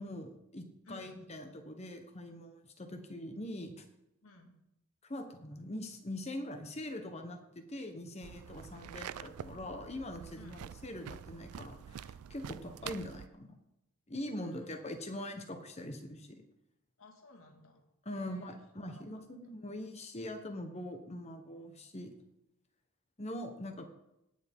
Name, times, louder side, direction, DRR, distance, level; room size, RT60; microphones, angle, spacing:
voice 1, 0.0-3.8 5.0-13.6 14.1-16.4 18.0-22.1 23.2-23.9, left 1 dB, 30° left, 6 dB, 1.1 m, -43 dB
voice 2, 0.9-1.2 4.2-4.6 10.4-10.6 14.3-14.9 17.0-18.6 18.9-19.3, left 1 dB, 70° left, 3 dB, 2.0 m, -56 dB
sound 1, 8.2-13.3, right 8 dB, 85° right, 0.4 m, -47 dB
18.0 x 7.1 x 3.7 m, 0.87 s
head